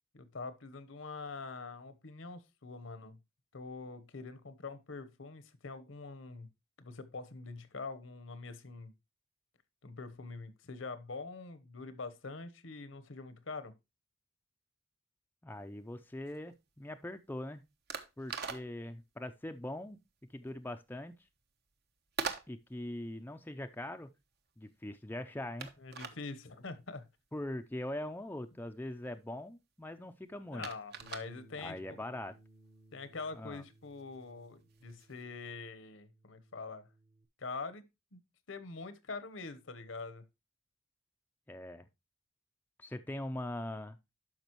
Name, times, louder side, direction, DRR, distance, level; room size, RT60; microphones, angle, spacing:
voice 1, 0.1-3.2 3.5-6.5 6.8-8.9 9.8-13.7 25.8-27.1 30.5-32.0 32.9-36.9 37.4-37.8 38.1-38.2 38.5-40.2, left 3 dB, 75° left, 1.0 m, -44 dB
voice 2, 15.4-17.6 18.2-20.0 20.3-21.1 22.5-24.1 24.6-25.7 27.3-30.7 31.6-32.3 33.4-33.6 41.5-41.9 42.8-44.0, left 1 dB, 10° left, 0.5 m, -42 dB
sound 1, 15.5-35.3, right 5 dB, 55° right, 1.0 m, -47 dB
Bass guitar, 31.0-37.3, right 1 dB, 30° right, 0.9 m, -61 dB
12.0 x 5.1 x 3.0 m
head